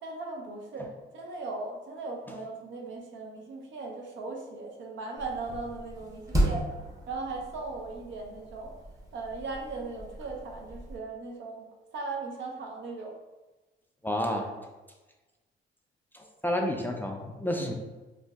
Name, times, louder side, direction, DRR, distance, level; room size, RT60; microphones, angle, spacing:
voice 1, 0.0-6.7 7.1-8.8 9.1-11.7 11.9-13.1 17.6-17.7, right 3 dB, 70° right, 1 dB, 0.6 m, -38 dB
sound 1, 5.2-11.0, right 1 dB, 15° right, 0.7 m, -34 dB
voice 2, 14.0-14.5 16.1-17.7, left 1 dB, 10° left, 1 dB, 0.3 m, -30 dB
2.5 x 2.1 x 3.4 m, 1.2 s
cardioid pair, 90°, 20 cm